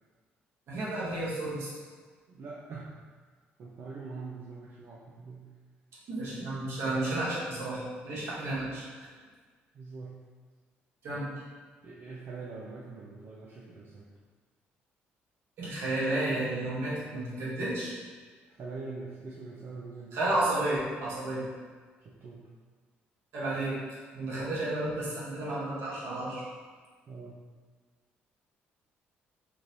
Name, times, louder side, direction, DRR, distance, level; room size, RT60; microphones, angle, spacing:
voice 1, 0.7-1.7 6.1-8.8 11.0-11.3 15.6-17.9 20.1-21.4 23.3-23.8 24.1-26.4, right 2 dB, 70° right, -7 dB, 1.1 m, -32 dB
voice 2, 2.3-2.9 3.6-5.4 8.4-8.7 9.7-10.2 11.8-14.1 18.5-20.2 22.0-22.4 27.1-27.4, right 4 dB, 55° right, -5 dB, 0.5 m, -43 dB
3.0 x 2.6 x 2.7 m, 1.5 s
supercardioid pair, 70°, 5 cm